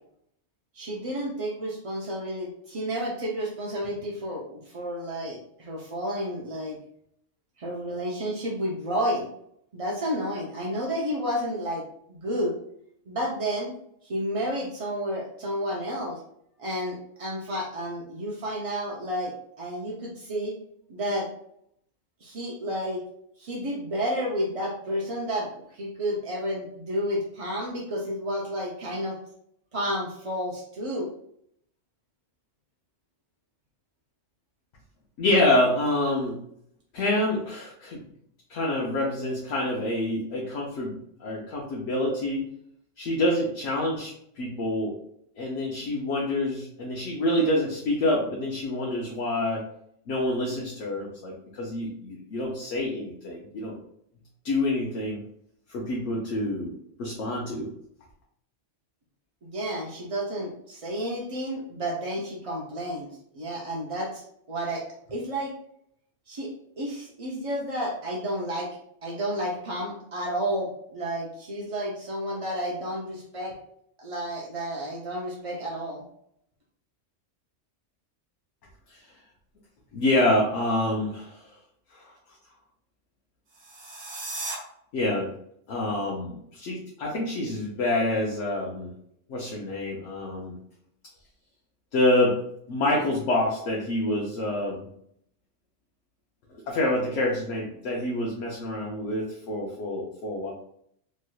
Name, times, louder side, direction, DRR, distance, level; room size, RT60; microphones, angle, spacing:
voice 1, 0.7-6.8 7.6-9.3 9.7-11.8 12.1-12.5 13.1-13.7 14.0-16.2 16.6-19.3 19.6-20.5 20.9-21.3 22.2-23.0 23.4-29.2 29.7-31.1 59.4-64.2 64.5-64.8 65.1-65.5 66.3-66.5 66.8-68.7 69.0-73.5 74.0-76.0, equal, 50° right, -4 dB, 0.4 m, -31 dB
voice 2, 35.2-36.4 36.9-38.0 38.5-40.9 41.2-42.5 43.0-44.9 45.4-49.6 50.1-53.8 54.4-55.2 55.7-56.7 57.0-57.7 78.9-79.0 79.9-81.6 81.9-82.2 84.9-85.3 85.7-88.9 89.3-90.6 91.9-92.4 92.7-94.9 96.5-100.5, left 1 dB, 75° left, -3 dB, 1.0 m, -27 dB
sound 1, 83.5-84.6, right 2 dB, 75° right, 1.2 m, -36 dB
3.2 x 2.9 x 2.2 m, 0.69 s
omnidirectional pair, 1.3 m